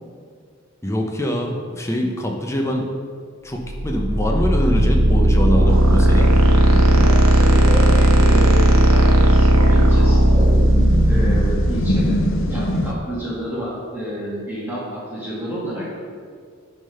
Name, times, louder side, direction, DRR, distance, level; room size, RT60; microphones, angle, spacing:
voice 1, 0.8-2.9 3.4-6.3, equal, 15° left, 1 dB, 0.7 m, -24 dB
sound 1, 3.7-12.5, right 1 dB, 85° right, 0.9 m, -15 dB
sound 2, 5.7-12.9, left 1 dB, 65° left, 0.6 m, -27 dB
voice 2, 6.9-10.5 11.1-12.2 12.5-16.0, equal, 10° right, -8 dB, 1.7 m, -29 dB
10.0 x 3.6 x 5.5 m, 2.1 s
head